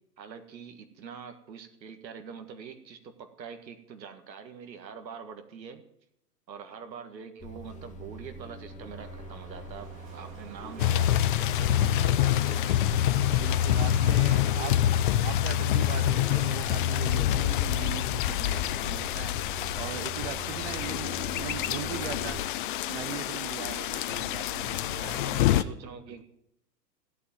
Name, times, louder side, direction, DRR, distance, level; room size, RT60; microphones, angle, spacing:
voice 1, 0.2-5.8 6.5-13.1 25.0-26.2, right 6 dB, 80° right, 6 dB, 1.9 m, -44 dB
sound 1, 7.4-22.4, right 2 dB, 15° left, 1.5 m, -43 dB
Wind, 8.7-18.6, right 6 dB, 55° right, 2.6 m, -49 dB
sound 2, 10.8-25.6, left 12 dB, 35° left, 0.5 m, -26 dB
voice 2, 13.3-19.4 19.8-25.2 26.1-26.2, right 13 dB, 40° right, 15 dB, 0.9 m, -40 dB
13.5 x 8.4 x 9.2 m, 0.77 s
hypercardioid pair, 130°, 50 cm